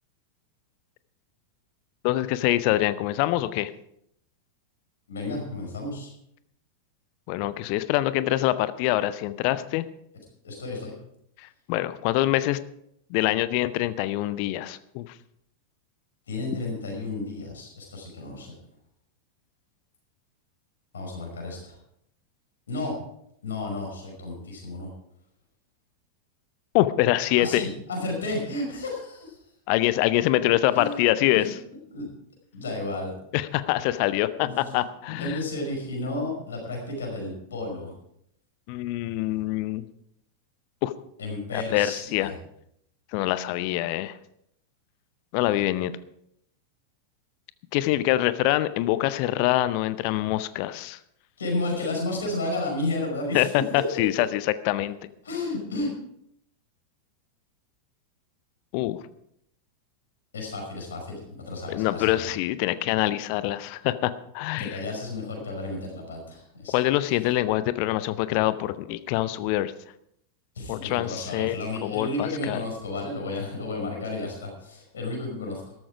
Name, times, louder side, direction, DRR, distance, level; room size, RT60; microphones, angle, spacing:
voice 1, 2.0-3.7 7.3-9.9 11.7-12.6 13.1-15.0 26.7-27.7 29.7-31.5 33.3-35.4 38.7-39.8 40.8-40.9 41.5-42.3 43.1-44.1 45.3-45.9 47.7-51.0 53.3-55.0 58.7-59.0 61.7-64.8 66.7-69.7 70.7-72.6, left 15 dB, 45° left, 15 dB, 0.6 m, -25 dB
voice 2, 5.1-6.1 10.4-10.9 16.3-18.5 20.9-21.8 22.7-22.9 23.4-24.9 27.4-29.4 30.7-31.1 31.4-31.5 31.9-32.1 32.5-33.1 34.4-38.0 41.2-42.3 51.4-53.5 55.2-55.9 60.3-62.3 64.6-66.8 70.6-75.7, left 2 dB, 65° left, 1 dB, 5.3 m, -32 dB
13.5 x 13.0 x 4.9 m, 0.73 s
figure-of-eight pair, 90°, 0 cm